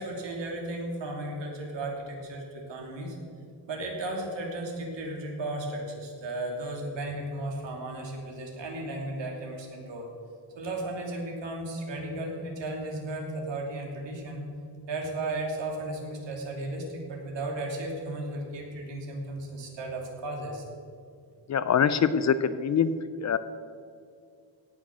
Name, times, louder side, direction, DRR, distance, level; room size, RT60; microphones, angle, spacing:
voice 1, 0.0-3.2 3.7-10.1 10.6-14.4 14.9-20.6, right 2 dB, 70° right, 0 dB, 2.9 m, -35 dB
voice 2, 21.5-22.9 23.2-23.4, left 7 dB, 40° left, 13 dB, 0.4 m, -24 dB
17.5 x 6.3 x 6.2 m, 2.3 s
wide cardioid pair, 155°, 45 cm